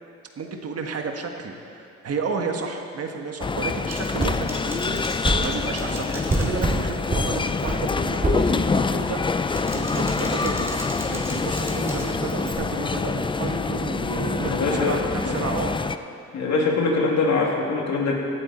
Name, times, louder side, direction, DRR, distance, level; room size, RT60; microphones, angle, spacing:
voice 1, 0.4-15.7, right 4 dB, 55° right, 3 dB, 1.5 m, -32 dB
sound 1, 3.4-16.0, left 4 dB, 15° left, 0.4 m, -26 dB
Typing, 3.9-7.1 7.4-7.8 8.1-8.5 9.3-12.5, right 1 dB, 10° right, 2.2 m, -40 dB
sound 2, 4.2-4.4 5.2-5.4 6.3-6.8 7.1-7.3 7.7-7.8 8.2-8.4, right 2 dB, 25° right, 2.7 m, -23 dB
voice 2, 14.4-15.0 15.2-15.3 16.3-18.1, left 3 dB, 65° left, -2 dB, 2.9 m, -23 dB
17.0 x 12.0 x 4.4 m, 2.5 s
cardioid pair, 90°, 30 cm